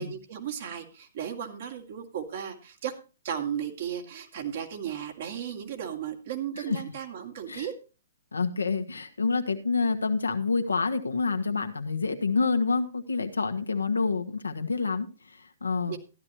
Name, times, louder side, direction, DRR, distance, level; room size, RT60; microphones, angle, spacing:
voice 1, 0.0-2.9 3.2-7.7 15.9-16.0, right 9 dB, 55° right, 3 dB, 2.4 m, -35 dB
voice 2, 8.3-15.1 15.6-16.0, left 4 dB, 90° left, 6 dB, 1.3 m, -27 dB
14.5 x 11.0 x 3.0 m, 0.33 s
hypercardioid pair, 130°, 0 cm